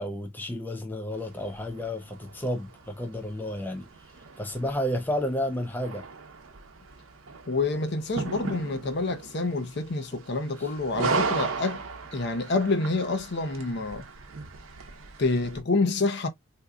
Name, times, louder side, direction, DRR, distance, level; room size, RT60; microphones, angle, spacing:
voice 1, 0.0-3.9 4.4-6.0 10.6-10.7, left 1 dB, 10° left, 0.4 m, -31 dB
sound 1, 1.1-15.6, right 4 dB, 75° right, 0.7 m, -37 dB
voice 2, 7.5-11.8 12.1-14.0 15.2-16.3, left 3 dB, 55° left, 0.6 m, -27 dB
3.7 x 2.7 x 2.3 m
head